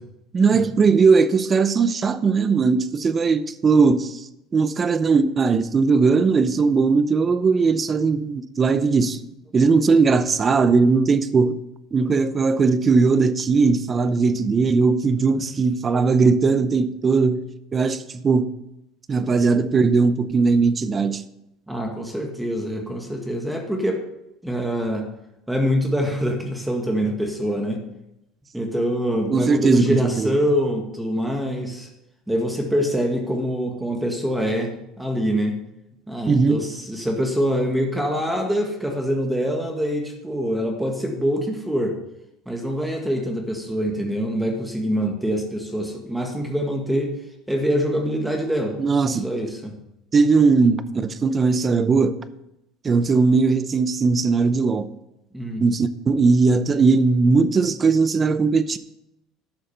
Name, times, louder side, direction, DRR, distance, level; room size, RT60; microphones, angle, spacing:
voice 1, 0.3-9.2 9.5-11.6 11.9-17.5 17.7-18.5 19.1-21.2 29.3-30.3 36.3-36.6 48.8-49.3 50.1-52.2 52.8-54.9 55.6-58.8, right 4 dB, 25° right, 0.7 m, -19 dB
voice 2, 21.7-24.0 24.4-25.0 25.5-27.8 28.5-31.9 32.3-35.5 36.1-42.0 42.5-47.1 47.5-48.8 49.2-49.7 55.3-55.6, equal, 5° right, 1.6 m, -24 dB
11.5 x 6.5 x 5.5 m
supercardioid pair, 125°, 0 cm